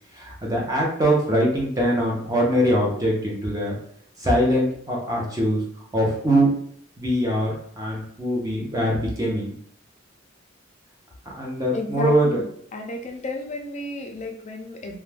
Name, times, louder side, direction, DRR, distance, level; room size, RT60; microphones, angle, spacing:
voice 1, 0.1-3.7 4.2-5.6 5.9-6.5 7.0-9.5 11.3-12.4, equal, 20° right, -3 dB, 0.7 m, -22 dB
voice 2, 11.7-12.4 12.7-15.0, left 1 dB, 35° left, 3 dB, 0.4 m, -32 dB
2.4 x 2.2 x 3.2 m, 0.65 s
head